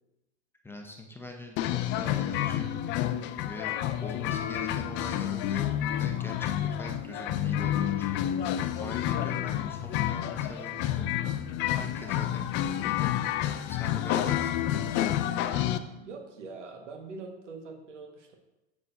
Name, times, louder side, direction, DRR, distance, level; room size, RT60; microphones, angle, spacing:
voice 1, 0.6-3.0 3.4-11.1 11.8-12.5 12.8-13.2 13.7-15.2, left 2 dB, 5° left, 2 dB, 0.8 m, -43 dB
sound 1, 1.6-15.8, left 11 dB, 35° left, 0.4 m, -29 dB
voice 2, 15.9-18.3, right 4 dB, 85° right, 3 dB, 1.5 m, -43 dB
7.5 x 7.1 x 2.6 m, 0.98 s
hypercardioid pair, 105°, 35 cm